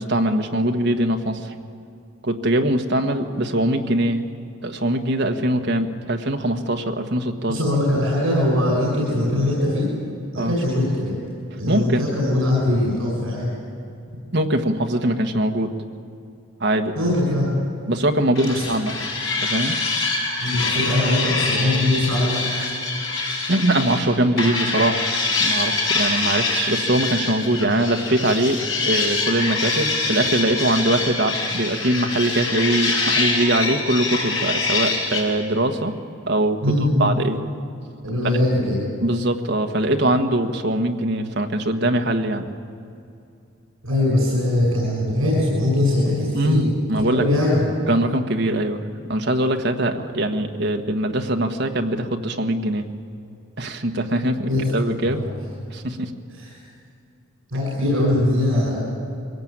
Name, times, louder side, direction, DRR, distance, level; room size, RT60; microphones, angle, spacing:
voice 1, 0.0-1.5 2.2-4.3 4.6-7.6 10.3-10.5 11.7-12.1 14.3-15.7 16.6-16.9 17.9-18.9 19.4-19.7 22.6-22.7 23.5-25.1 25.4-35.9 36.3-37.4 39.0-42.5 46.3-47.2 47.9-48.8 49.1-52.9 53.6-55.2 55.7-56.1, right 1 dB, 55° right, 4 dB, 1.5 m, -22 dB
voice 2, 7.5-9.9 10.3-11.2 11.6-13.5 17.0-17.6 18.5-18.6 20.4-22.4 36.6-37.1 38.0-38.8 43.8-46.6 47.1-47.7 54.5-54.6 55.0-55.3 56.3-56.5 57.5-58.8, left 1 dB, 75° right, -4 dB, 6.7 m, -21 dB
sound 1, 18.3-24.1 24.4-35.2, left 3 dB, 65° left, 6.5 m, -24 dB
23.0 x 17.5 x 8.8 m, 2.5 s
head